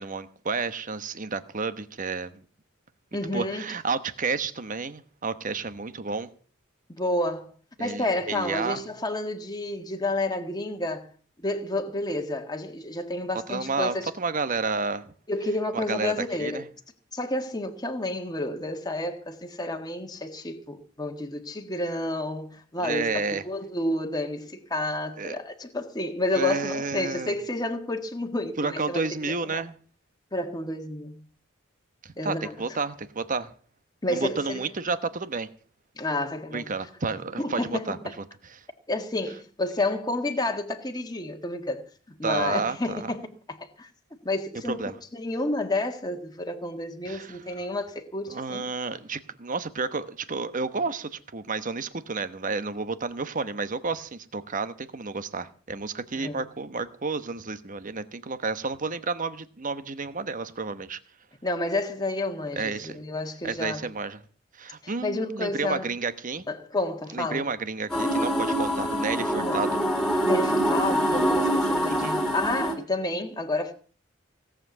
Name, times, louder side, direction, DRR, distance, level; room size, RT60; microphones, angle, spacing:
voice 1, 0.0-2.4 3.3-6.3 7.8-8.8 13.5-15.0 15.7-16.1 16.4-16.6 22.8-23.4 25.2-25.3 26.3-27.4 28.6-29.7 32.0-33.5 34.1-35.5 36.5-38.0 42.2-43.1 44.7-45.0 47.1-47.7 48.3-61.0 62.6-63.0 63.4-64.2 64.6-66.4 67.1-69.7 71.9-72.2, right 4 dB, 40° right, 1.0 m, -31 dB
voice 2, 3.1-3.7 6.9-7.5 7.8-11.1 11.4-14.1 15.3-16.7 17.1-29.6 30.3-31.2 32.2-32.5 34.0-34.7 36.0-36.7 37.4-38.1 38.9-43.9 44.2-48.6 56.1-56.4 61.4-63.8 64.8-65.9 66.5-67.4 69.4-69.6 70.2-73.7, left 2 dB, 20° left, 1.5 m, -30 dB
sound 1, 67.9-72.7, equal, ahead, 3.0 m, -25 dB
17.5 x 7.7 x 8.0 m
head